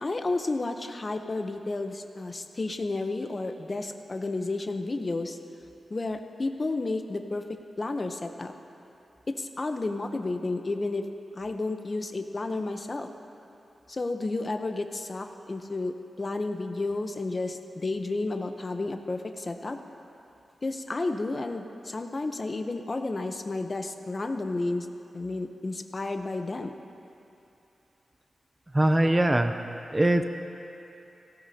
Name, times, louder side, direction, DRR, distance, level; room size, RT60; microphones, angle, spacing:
voice 1, 0.0-5.4 5.9-7.4 7.8-8.5 9.3-11.1 11.3-13.1 13.9-19.8 20.6-24.9 25.1-26.8, left 2 dB, 30° left, 6 dB, 0.8 m, -31 dB
voice 2, 28.7-29.6 29.9-30.2, right 1 dB, 15° right, 7 dB, 0.5 m, -22 dB
18.5 x 17.0 x 2.8 m, 2.8 s
wide cardioid pair, 125°, 0 cm